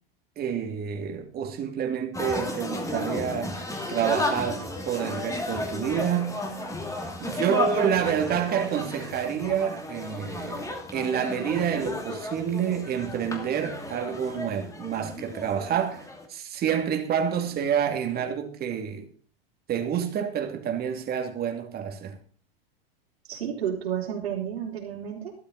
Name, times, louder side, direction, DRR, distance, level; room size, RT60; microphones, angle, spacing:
voice 1, 0.4-6.4 7.2-16.0 16.3-19.1 19.7-22.2, right 8 dB, 30° right, 2.6 m, -28 dB
sound 1, 2.1-16.3, left 2 dB, 10° left, 2.7 m, -33 dB
voice 2, 7.8-8.1 23.2-25.3, right 9 dB, 80° right, 4.0 m, -31 dB
13.0 x 13.0 x 4.1 m
hypercardioid pair, 115°, 31 cm